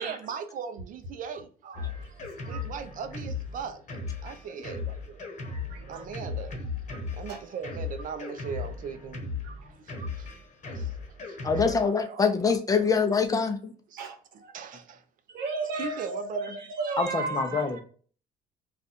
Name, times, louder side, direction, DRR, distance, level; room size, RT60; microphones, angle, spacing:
voice 1, 0.0-3.8 4.2-5.4 5.8-6.9 7.1-9.3 9.7-10.3 10.6-10.9 11.2-12.4 12.8-12.9 13.9-15.0 15.6-16.6 17.1-17.2, right 7 dB, 50° right, 0.6 m, -39 dB
Drum kit, 1.7-11.8, left 4 dB, 45° left, 1.1 m, -37 dB
voice 2, 1.8-2.6 5.7-6.0 7.3-7.4 9.4-9.7 10.0-10.1 14.0-14.5 15.3-17.8, right 3 dB, 75° right, 1.0 m, -35 dB
voice 3, 11.4-13.7 17.0-17.8, left 5 dB, 20° left, 0.6 m, -25 dB
2.5 x 2.4 x 4.1 m
cardioid pair, 110°, 17 cm